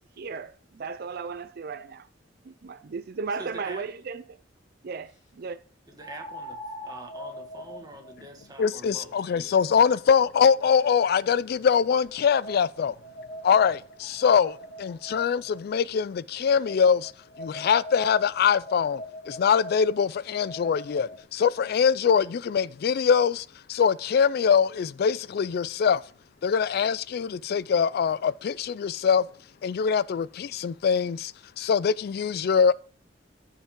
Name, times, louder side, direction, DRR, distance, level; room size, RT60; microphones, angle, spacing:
voice 1, 0.2-2.1 2.5-4.2 4.8-5.6, right 5 dB, 55° right, 0.5 m, -35 dB
voice 2, 3.3-3.9 5.9-6.6 6.8-9.5, right 2 dB, 20° right, 1.8 m, -44 dB
sound 1, 3.4-3.5 6.0-11.2 11.9-15.6 16.6-21.2, equal, 40° left, 2.5 m, -43 dB
voice 3, 8.6-12.9 13.4-17.1 17.4-19.0 19.3-26.0 26.4-29.3 29.6-32.7, left 6 dB, 55° left, 0.3 m, -23 dB
14.5 x 5.6 x 3.7 m
head